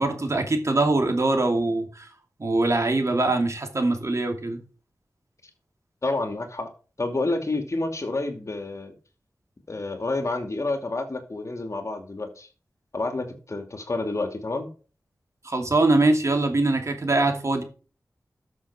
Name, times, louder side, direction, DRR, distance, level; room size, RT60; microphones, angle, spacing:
voice 1, 0.0-2.1 2.4-4.6 15.4-17.6, right 2 dB, 50° right, 2.6 m, -23 dB
voice 2, 6.0-6.7 7.0-8.9 9.7-12.5 12.9-14.7, left 2 dB, 50° left, 2.5 m, -29 dB
13.0 x 6.5 x 4.9 m
wide cardioid pair, 55°, 6 cm